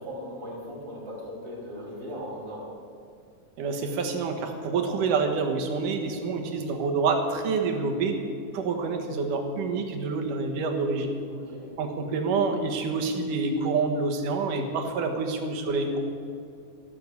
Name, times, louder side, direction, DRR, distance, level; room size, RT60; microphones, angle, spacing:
voice 1, 0.0-2.7 11.2-11.7, equal, 30° right, -6 dB, 4.7 m, -38 dB
voice 2, 3.6-8.1 8.5-11.2 11.8-16.1, right 4 dB, 85° right, 4 dB, 3.0 m, -27 dB
13.0 x 12.5 x 8.0 m, 2.4 s
omnidirectional pair, 3.6 m